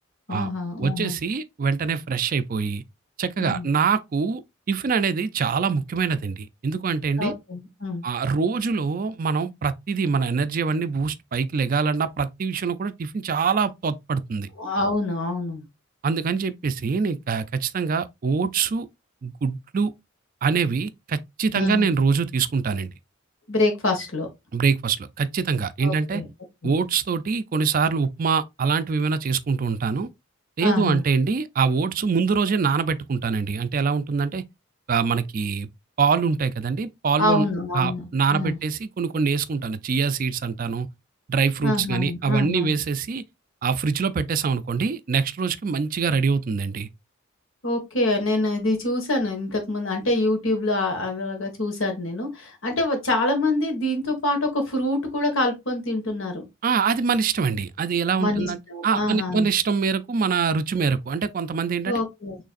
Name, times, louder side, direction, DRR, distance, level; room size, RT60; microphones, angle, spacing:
voice 1, 0.3-1.2 3.4-3.7 7.2-8.0 14.6-15.6 21.5-21.9 23.5-24.3 25.8-26.3 26.6-26.8 30.6-31.0 37.2-38.0 38.3-38.6 41.6-42.8 47.6-56.4 58.2-59.5 61.8-62.4, left 2 dB, 70° left, 1.6 m, -25 dB
voice 2, 0.8-2.8 3.2-4.4 4.7-7.3 8.0-14.5 16.0-18.9 19.2-19.9 20.4-22.9 24.5-26.2 26.6-30.1 30.6-34.4 34.9-35.7 36.0-37.4 37.7-40.9 41.3-43.2 43.6-46.9 56.6-62.0, right 5 dB, 40° right, 0.4 m, -24 dB
6.4 x 3.2 x 2.4 m
head